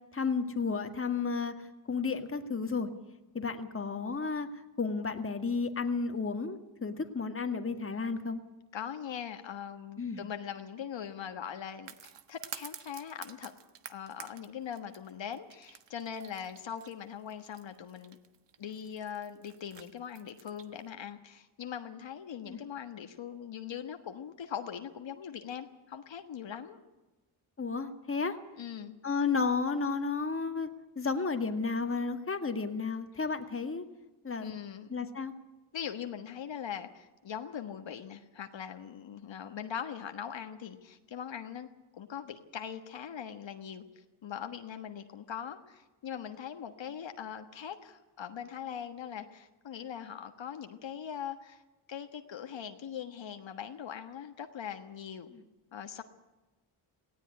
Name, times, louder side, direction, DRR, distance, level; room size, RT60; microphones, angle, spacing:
voice 1, 0.1-2.9 3.3-4.5 4.8-8.4 10.0-10.2 22.4-22.6 27.6-28.4 29.0-33.8 34.2-34.5 34.9-35.3 55.3-55.4, left 4 dB, 25° left, 7 dB, 1.9 m, -32 dB
voice 2, 8.7-11.9 12.3-13.5 13.9-18.2 18.6-26.8 28.6-28.9 34.4-35.0 35.7-41.7 41.9-51.6 51.9-55.3 55.7-56.0, left 8 dB, 60° left, 7 dB, 1.5 m, -41 dB
sound 1, 11.9-20.8, right 8 dB, 55° right, 1.4 m, -49 dB
18.0 x 17.0 x 9.8 m, 1.1 s
cardioid pair, 100°, 50 cm